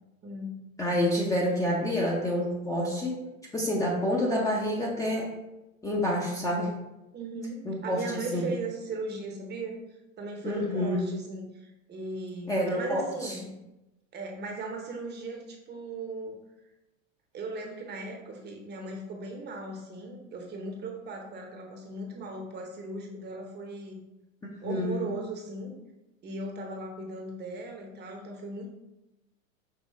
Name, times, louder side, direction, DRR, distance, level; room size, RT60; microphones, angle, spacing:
voice 1, 0.2-0.6 7.1-13.5 14.1-16.4 17.3-24.0 24.6-25.8 26.2-28.7, right 2 dB, 25° right, 2 dB, 0.8 m, -38 dB
voice 2, 0.8-3.2 3.5-5.3 5.8-6.7 7.6-8.4 10.4-11.1 12.5-13.3 24.6-25.0, left 1 dB, 10° left, -3 dB, 0.6 m, -28 dB
5.6 x 3.0 x 3.1 m, 0.95 s
hypercardioid pair, 105°, 41 cm